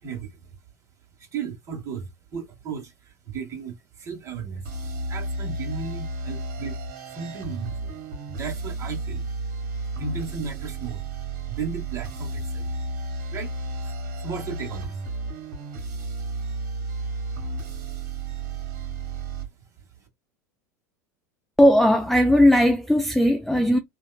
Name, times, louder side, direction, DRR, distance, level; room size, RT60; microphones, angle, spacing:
voice 1, 1.2-4.7 5.1-6.8 7.1-7.9 8.3-9.3 10.0-11.0 11.5-12.7 13.3-13.6 13.8-15.0 16.0-16.1, right 5 dB, 30° right, 1.4 m, -35 dB
sound 1, 4.6-19.5, right 2 dB, 55° right, 1.4 m, -32 dB
voice 2, 21.6-23.8, equal, ahead, 0.3 m, -17 dB
2.8 x 2.4 x 2.2 m
figure-of-eight pair, 80°, 10 cm